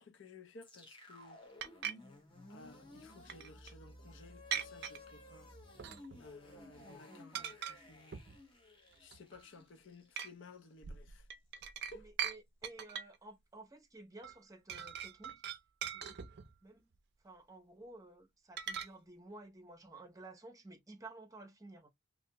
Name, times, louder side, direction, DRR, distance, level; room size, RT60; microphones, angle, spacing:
voice 1, 0.0-1.4 2.5-5.5 6.2-8.2 9.0-11.3 11.8-12.1, left 3 dB, 60° left, 0.5 m, -56 dB
sound 1, 0.6-10.8, left 2 dB, 25° left, 0.9 m, -56 dB
sound 2, 1.6-1.9 3.3-3.7 4.5-5.0 5.8-6.3 6.6-6.9 7.3-7.8 8.1-8.4 8.9-9.4 10.2-10.3 10.8-12.4 12.6-13.2 14.2-14.4 14.7-16.6 18.6-18.9, right 8 dB, 50° right, 0.4 m, -41 dB
voice 2, 6.6-7.4 12.0-15.4 15.8-16.3 16.6-16.9 17.2-21.9, right 2 dB, 15° right, 0.7 m, -54 dB
3.3 x 2.5 x 2.8 m
head